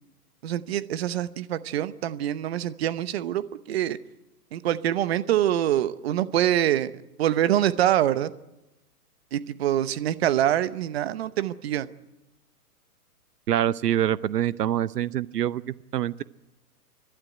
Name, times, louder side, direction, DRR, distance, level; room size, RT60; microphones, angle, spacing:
voice 1, 0.4-4.0 4.5-8.3 9.3-11.9, right 12 dB, 40° right, 14 dB, 0.9 m, -25 dB
voice 2, 13.5-16.2, right 11 dB, 80° right, 18 dB, 0.8 m, -25 dB
29.5 x 12.5 x 9.8 m, 0.97 s
hypercardioid pair, 155°, 47 cm